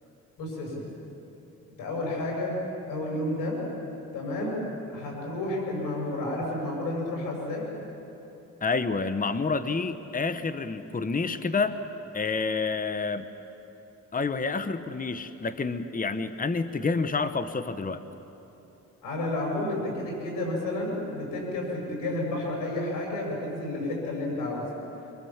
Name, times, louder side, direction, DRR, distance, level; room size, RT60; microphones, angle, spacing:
voice 1, 0.4-0.9 1.8-2.6 2.9-3.6 4.1-4.6 4.9-7.7 19.0-24.7, left 1 dB, 90° left, -1 dB, 6.6 m, -31 dB
voice 2, 8.6-11.8 12.1-13.3 14.1-18.0, left 4 dB, 25° left, 11 dB, 1.1 m, -28 dB
24.5 x 23.5 x 7.4 m, 3.0 s
cardioid pair, 75°, 32 cm